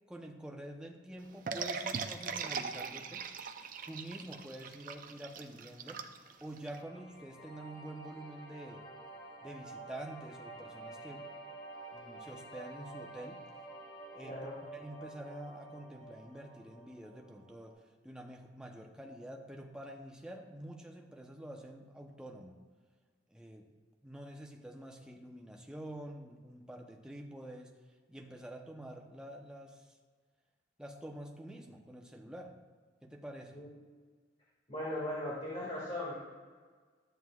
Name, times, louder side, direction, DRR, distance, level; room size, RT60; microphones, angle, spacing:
voice 1, 0.1-3.3 3.9-6.1 6.4-8.9 9.4-11.3 11.9-13.4 14.1-14.5 14.7-22.6 23.3-23.7 24.0-27.8 28.1-30.0 30.8-32.6 33.0-33.6, right 1 dB, 5° right, 1 dB, 0.7 m, -47 dB
sound 1, 1.5-6.8, right 5 dB, 50° right, 0.6 m, -40 dB
sound 2, 6.7-17.7, right 2 dB, 60° left, 2.9 m, -50 dB
voice 2, 14.2-14.5 33.5-33.7 34.7-36.1, left 1 dB, 35° left, -6 dB, 2.0 m, -38 dB
13.0 x 9.1 x 2.4 m, 1.5 s
head